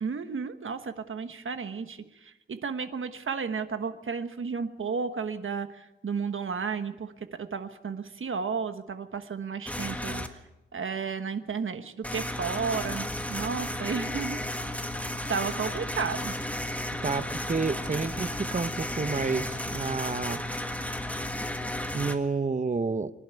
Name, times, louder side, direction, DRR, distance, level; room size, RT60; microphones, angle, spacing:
voice 1, 0.0-7.1 7.4-10.4 10.7-14.4 15.3-16.3, right 5 dB, 80° right, 9 dB, 1.3 m, -33 dB
sound 1, 9.7-10.3 12.0-22.2, left 1 dB, 5° left, 1.6 m, -33 dB
voice 2, 17.0-20.4 21.9-23.1, right 4 dB, 40° right, 13 dB, 0.8 m, -30 dB
24.5 x 11.0 x 9.5 m, 0.96 s
wide cardioid pair, 100°, 20 cm